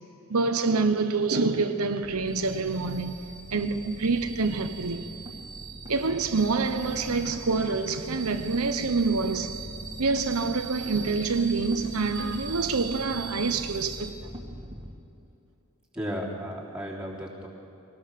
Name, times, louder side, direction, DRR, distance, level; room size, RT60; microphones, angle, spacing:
voice 1, 0.3-3.2 3.5-5.1 5.9-9.6 10.0-14.3, right 4 dB, 85° right, 1.0 m, -26 dB
sound 1, 2.0-14.9, right 3 dB, 20° right, 2.2 m, -40 dB
voice 2, 15.9-17.5, equal, 5° right, 3.6 m, -34 dB
23.5 x 18.5 x 6.7 m
head